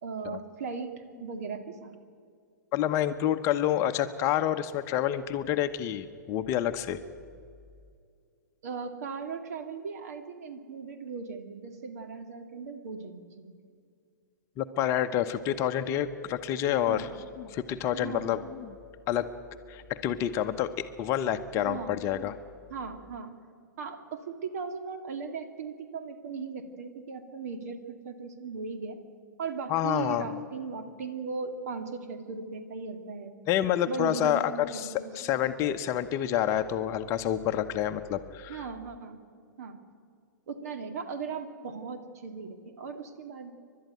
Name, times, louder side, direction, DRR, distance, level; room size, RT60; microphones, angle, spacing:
voice 1, 0.0-2.0 8.6-13.5 16.7-17.1 17.9-18.3 21.5-21.9 22.7-23.4 23.8-29.0 29.4-33.3 33.9-35.3 38.5-39.2 39.6-39.8 40.5-43.5, right 5 dB, 55° right, 7 dB, 2.3 m, -38 dB
voice 2, 2.7-7.0 14.6-17.1 17.4-18.7 19.1-19.3 19.7-22.4 29.7-30.4 33.5-38.6, left 11 dB, 30° left, 9 dB, 0.9 m, -28 dB
29.5 x 12.0 x 9.2 m, 2.3 s
figure-of-eight pair, 110°, 10 cm